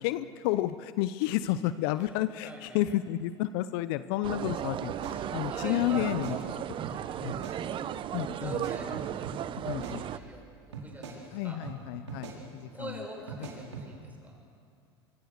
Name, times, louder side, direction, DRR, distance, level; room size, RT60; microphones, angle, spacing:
voice 1, 0.0-4.9 5.3-6.6 7.2-7.4 8.1-8.6 9.7-10.0 11.3-13.0, left 14 dB, 60° left, 14 dB, 0.8 m, -31 dB
voice 2, 2.4-2.8 5.4-6.1 6.8-9.3 9.8-10.4 10.8-11.6 12.7-14.4, right 1 dB, 10° right, 1 dB, 7.0 m, -45 dB
sound 1, 4.2-10.2, right 11 dB, 35° right, 0.8 m, -35 dB
sound 2, 4.4-4.6 4.9-5.6 5.9-6.4 6.8-7.0 7.3-7.6 8.5-9.4 9.7-10.4 10.7-11.2 11.6-11.8 12.1-12.4 13.3-13.9, right 5 dB, 85° right, 4.7 m, -41 dB
25.0 x 23.5 x 6.6 m, 2.4 s
hypercardioid pair, 85°, 14 cm